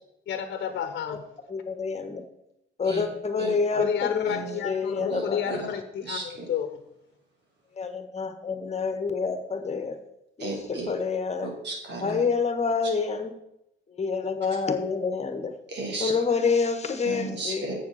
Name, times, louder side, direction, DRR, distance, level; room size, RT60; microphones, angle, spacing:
voice 1, 0.3-1.2 3.7-6.8, left 8 dB, 60° left, 8 dB, 1.0 m, -30 dB
voice 2, 1.5-2.2 2.8-5.6 7.7-10.0 10.4-11.5 12.0-13.3 13.9-15.5 16.0-17.6, left 5 dB, 35° left, 8 dB, 1.5 m, -28 dB
voice 3, 4.3-4.6 5.0-5.7 6.0-6.5 10.4-10.9 11.4-12.2 15.7-16.1 17.0-17.8, right 2 dB, 60° right, -2 dB, 3.8 m, -34 dB
7.5 x 7.1 x 6.5 m, 0.85 s
cardioid pair, 90°, 20 cm